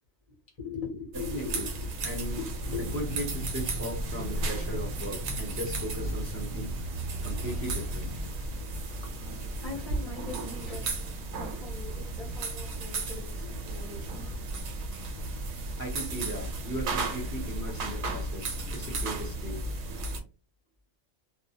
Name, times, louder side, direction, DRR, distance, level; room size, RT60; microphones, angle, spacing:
voice 1, 0.6-1.6 2.4-2.9 9.4-14.8, left 5 dB, 35° left, -4 dB, 0.6 m, -41 dB
sound 1, 1.1-20.2, right 2 dB, 85° right, 1.1 m, -35 dB
voice 2, 1.3-1.7 2.0-2.4 2.8-6.8 7.2-8.1 15.8-19.6, right 1 dB, 20° right, -2 dB, 0.3 m, -37 dB
sound 2, 2.6-8.2, equal, 60° right, 0.6 m, -38 dB
2.3 x 2.1 x 2.7 m, 0.32 s
omnidirectional pair, 1.4 m